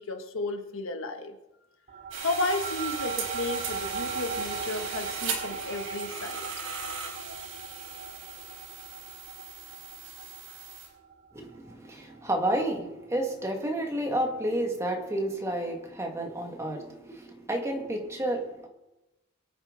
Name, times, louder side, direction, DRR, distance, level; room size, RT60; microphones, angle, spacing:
voice 1, 0.0-1.3 2.2-6.5, left 2 dB, 75° left, 6 dB, 1.4 m, -33 dB
sound 1, 1.9-12.7, right 5 dB, 45° right, 1.1 m, -39 dB
sound 2, 2.1-10.9, right 5 dB, 85° right, 4.3 m, -38 dB
voice 2, 11.3-18.7, right 1 dB, 15° right, 2 dB, 2.0 m, -31 dB
23.5 x 8.9 x 4.0 m, 0.96 s
head